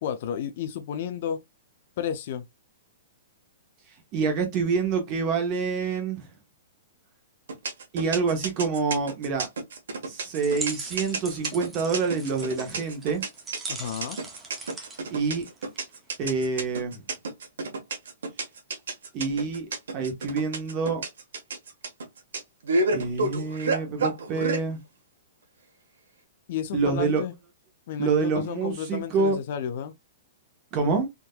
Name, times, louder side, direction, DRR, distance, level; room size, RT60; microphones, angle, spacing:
voice 1, 0.0-1.4 2.0-2.5 13.7-14.2 26.5-27.3 27.9-29.9, left 9 dB, 45° left, 0.4 m, -32 dB
voice 2, 4.1-6.2 7.9-9.5 10.1-13.2 15.1-15.5 16.2-17.0 19.1-19.7 19.9-21.0 22.9-24.8 26.7-27.2 28.0-29.4 30.7-31.1, right 4 dB, 25° right, 1.0 m, -26 dB
sound 1, 7.5-24.6, right 3 dB, 85° right, 1.3 m, -29 dB
sound 2, 10.3-15.9, right 3 dB, 10° right, 0.6 m, -40 dB
3.6 x 2.7 x 2.3 m
hypercardioid pair, 170°, 0 cm